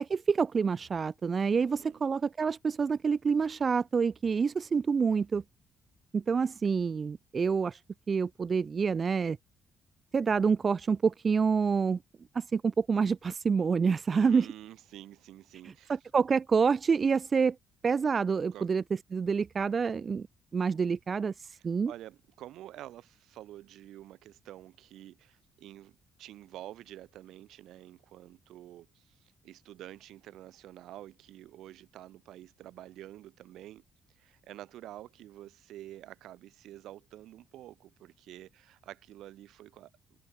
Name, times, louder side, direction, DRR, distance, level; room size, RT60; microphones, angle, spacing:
voice 1, 0.0-5.4 6.1-7.8 8.1-9.4 10.1-12.0 12.3-14.5 15.9-17.6 17.8-18.8 19.1-20.3 20.5-21.9, right 5 dB, 40° right, 0.4 m, -27 dB
voice 2, 1.5-2.0 14.1-16.0 18.5-18.7 21.5-33.8 34.2-39.9, right 13 dB, 85° right, 5.9 m, -49 dB
cardioid pair, 90°, 0 cm